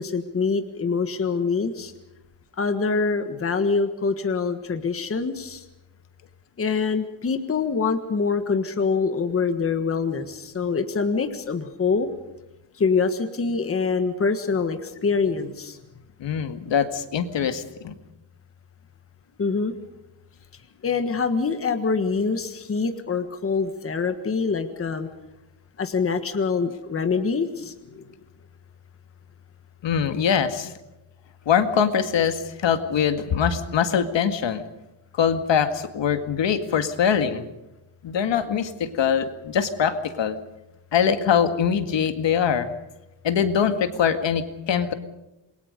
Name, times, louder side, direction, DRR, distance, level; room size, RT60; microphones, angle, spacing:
voice 1, 0.0-1.9 2.6-5.6 6.6-12.1 12.8-15.8 19.4-19.7 20.8-25.1 25.8-28.0, left 5 dB, 30° left, 8 dB, 1.6 m, -25 dB
voice 2, 16.2-18.0 29.8-30.7 31.5-34.6 35.1-37.5 38.0-40.4 40.9-42.7 43.2-44.9, left 7 dB, 65° left, 9 dB, 2.0 m, -23 dB
28.0 x 22.0 x 5.2 m, 0.97 s
wide cardioid pair, 180°, 47 cm